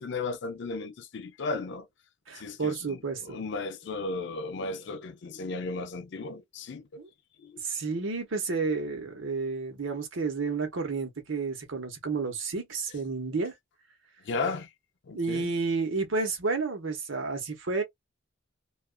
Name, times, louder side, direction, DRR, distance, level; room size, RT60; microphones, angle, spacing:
voice 1, 0.0-1.9 2.4-7.0 7.4-7.6 14.3-14.7 15.1-15.5, left 3 dB, 65° left, 0.5 m, -35 dB
voice 2, 2.3-3.4 7.0-7.1 7.6-13.5 15.1-17.8, right 4 dB, 85° right, 1.1 m, -31 dB
2.4 x 2.4 x 2.2 m
head